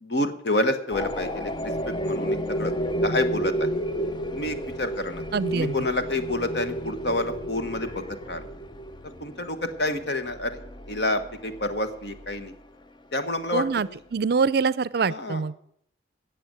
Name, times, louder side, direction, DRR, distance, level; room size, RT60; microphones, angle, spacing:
voice 1, 0.0-1.5 1.9-2.7 3.0-3.7 4.3-5.2 5.5-8.4 9.2-10.6 10.9-12.5 13.1-13.6 15.1-15.4, left 2 dB, 65° left, 9 dB, 1.3 m, -28 dB
sound 1, 0.9-12.5, right 1 dB, 25° left, 0.6 m, -31 dB
voice 2, 5.3-5.8 13.5-15.5, right 5 dB, 55° right, 18 dB, 0.5 m, -25 dB
16.5 x 6.9 x 7.8 m, 0.68 s
head